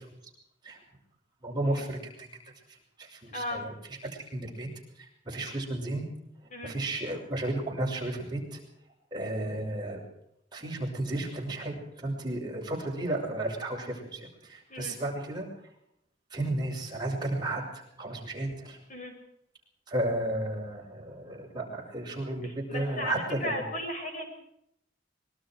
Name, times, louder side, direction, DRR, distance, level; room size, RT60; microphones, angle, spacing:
voice 1, 1.4-2.3 3.0-3.7 4.1-4.7 5.0-6.1 6.6-8.6 9.1-10.0 10.5-15.5 16.3-18.8 19.9-23.6, right 1 dB, 25° right, -1 dB, 7.0 m, -33 dB
voice 2, 3.3-3.7 6.5-6.8 14.7-15.0 18.9-19.1 22.4-24.3, left 1 dB, 45° left, 3 dB, 6.5 m, -36 dB
25.5 x 23.0 x 4.8 m, 0.75 s
head